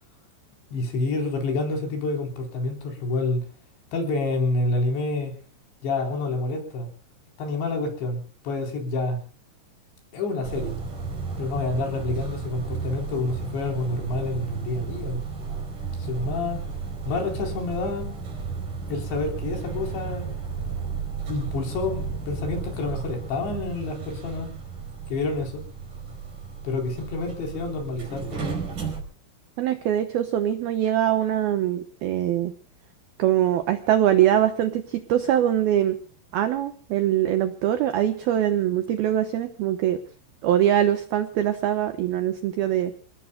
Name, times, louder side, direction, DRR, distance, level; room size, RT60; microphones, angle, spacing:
voice 1, 0.7-3.4 3.9-5.3 5.8-6.9 7.4-9.2 10.1-10.8 11.4-15.2 16.0-16.6 17.1-18.1 18.9-20.5 21.3-24.5 25.1-25.6 26.6-28.4, left 2 dB, 60° left, 3 dB, 6.1 m, -28 dB
sound 1, 10.4-29.0, right 5 dB, 40° right, 6.2 m, -33 dB
voice 2, 29.6-32.5 33.2-36.0 36.3-40.0 40.4-42.9, right 11 dB, 80° right, 9 dB, 2.2 m, -23 dB
28.5 x 18.5 x 2.3 m, 0.42 s
omnidirectional pair, 5.8 m